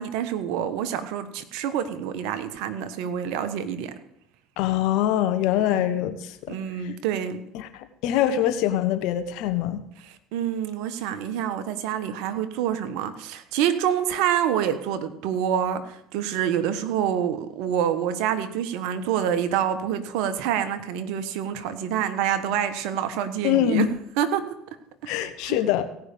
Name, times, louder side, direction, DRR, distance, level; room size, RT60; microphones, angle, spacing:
voice 1, 0.0-3.9 5.7-5.9 6.5-7.4 10.0-23.9 24.2-24.5 25.0-25.6, right 9 dB, 70° right, 10 dB, 1.2 m, -27 dB
voice 2, 4.6-6.3 7.5-9.8 23.4-23.9 25.1-25.8, left 11 dB, 65° left, 9 dB, 1.2 m, -23 dB
17.0 x 5.7 x 6.8 m, 0.79 s
hypercardioid pair, 80°, 0 cm